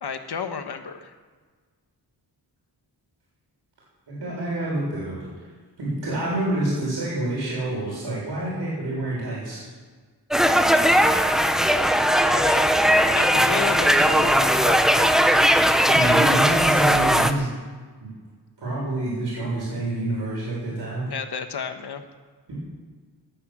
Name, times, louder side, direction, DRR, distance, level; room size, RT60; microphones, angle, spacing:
voice 1, 0.0-1.1 12.3-12.7 13.1-15.2 21.1-22.0, left 6 dB, 65° left, 7 dB, 1.5 m, -32 dB
voice 2, 4.1-5.2 5.8-9.6 15.8-17.5 18.0-18.1 18.6-21.1 22.5-22.6, right 2 dB, 80° right, -6 dB, 6.7 m, -27 dB
sound 1, 10.3-17.3, equal, ahead, 0.8 m, -18 dB
18.0 x 10.5 x 7.5 m, 1.5 s
wide cardioid pair, 155°, 41 cm